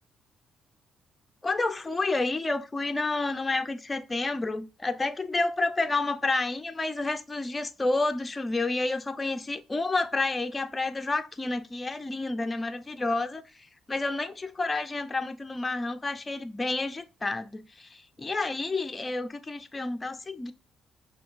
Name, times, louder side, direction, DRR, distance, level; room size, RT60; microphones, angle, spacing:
voice 1, 1.4-13.4 13.9-20.5, left 3 dB, 20° left, 0.5 m, -30 dB
5.6 x 2.3 x 2.4 m
cardioid pair, 90°, 0 cm